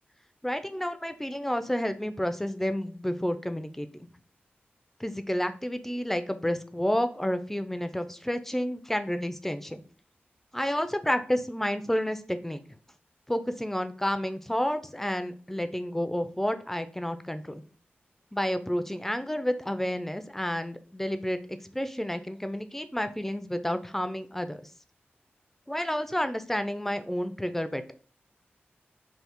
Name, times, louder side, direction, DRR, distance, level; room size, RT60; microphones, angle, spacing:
voice 1, 0.4-4.1 5.0-9.8 10.5-12.6 13.3-17.6 18.3-24.6 25.7-27.8, equal, 5° left, 10 dB, 0.3 m, -30 dB
3.2 x 2.0 x 2.9 m, 0.41 s
cardioid pair, 55°, 4 cm